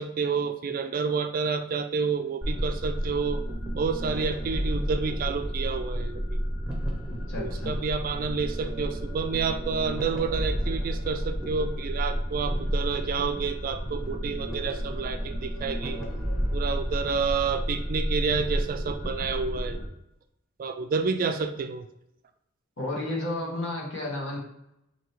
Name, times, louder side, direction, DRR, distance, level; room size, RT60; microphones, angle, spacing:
voice 1, 0.0-3.4 3.7-6.4 7.4-16.0 16.5-19.8 20.6-21.9, right 5 dB, 45° right, 8 dB, 0.3 m, -29 dB
sound 1, 2.4-19.9, equal, 5° right, 0.8 m, -31 dB
voice 2, 7.1-7.8 22.8-24.4, left 1 dB, 65° left, -3 dB, 1.4 m, -32 dB
4.8 x 2.8 x 3.0 m, 0.79 s
head